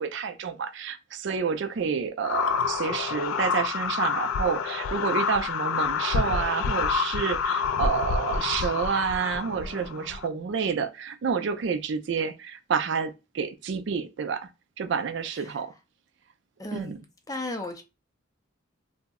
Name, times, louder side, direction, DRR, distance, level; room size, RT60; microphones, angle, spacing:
voice 1, 0.0-14.5 14.8-15.7 16.7-17.0, right 6 dB, 60° right, 0.4 m, -29 dB
sound 1, 2.2-10.3, left 5 dB, 85° left, 0.3 m, -28 dB
voice 2, 16.6-17.0 17.3-17.8, left 2 dB, 15° left, 0.4 m, -35 dB
2.6 x 2.0 x 3.5 m
head